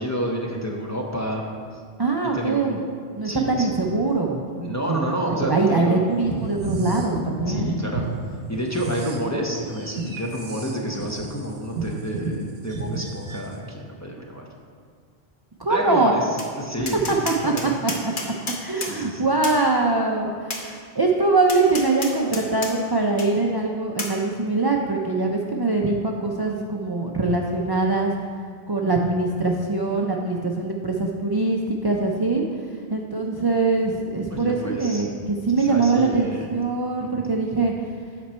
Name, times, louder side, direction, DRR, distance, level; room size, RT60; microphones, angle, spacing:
voice 1, 0.0-1.4 2.3-2.7 3.2-3.8 4.6-6.0 7.5-8.1 8.5-12.4 12.6-14.4 15.7-16.3 16.6-17.0 17.4-17.7 18.8-19.3 34.3-35.1 35.5-36.5 37.0-37.2, equal, 20° left, -1 dB, 0.7 m, -29 dB
voice 2, 2.0-2.8 3.2-7.7 15.6-16.1 16.8-17.9 18.2-28.1 28.7-32.4 32.9-37.7, right 3 dB, 30° right, 0 dB, 0.4 m, -23 dB
sound 1, 6.2-8.1 8.4-13.5, right 3 dB, 80° right, 1.1 m, -31 dB
Tap, 16.4-16.5 16.9-18.9 19.4-19.6 20.5-20.6 21.5-22.7 23.2-23.3 24.0-24.1, left 3 dB, 55° left, 1.1 m, -31 dB
8.5 x 6.0 x 4.4 m, 2.1 s
omnidirectional pair, 1.1 m